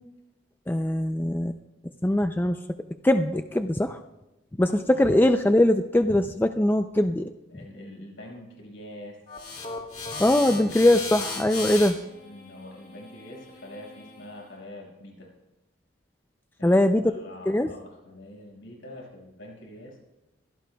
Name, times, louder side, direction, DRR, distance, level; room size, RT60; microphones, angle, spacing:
voice 1, 0.7-1.5 2.0-2.6 3.0-4.0 4.6-7.3 10.2-12.0 16.6-17.0 17.5-17.7, left 1 dB, 10° left, 7 dB, 0.4 m, -21 dB
voice 2, 7.5-9.2 12.1-15.3 16.6-16.8 17.1-20.0, left 1 dB, 70° left, -2 dB, 5.7 m, -44 dB
sound 1, 9.3-14.4, left 4 dB, 35° left, 2.2 m, -37 dB
23.5 x 16.5 x 2.3 m, 0.99 s
head